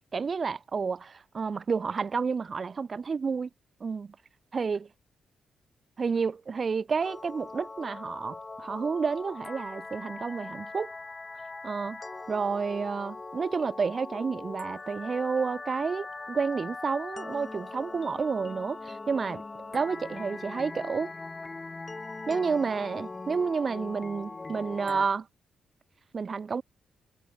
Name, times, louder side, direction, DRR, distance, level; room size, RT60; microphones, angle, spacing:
voice 1, 0.1-3.5 3.8-4.2 4.5-4.9 6.0-10.9 11.6-12.0 12.3-19.4 19.7-21.1 22.3-25.3 26.1-26.6, right 5 dB, 45° right, 0.5 m, -30 dB
sound 1, 7.0-25.1, left 3 dB, 30° left, 2.0 m, -41 dB
supercardioid pair, 60°, 0 cm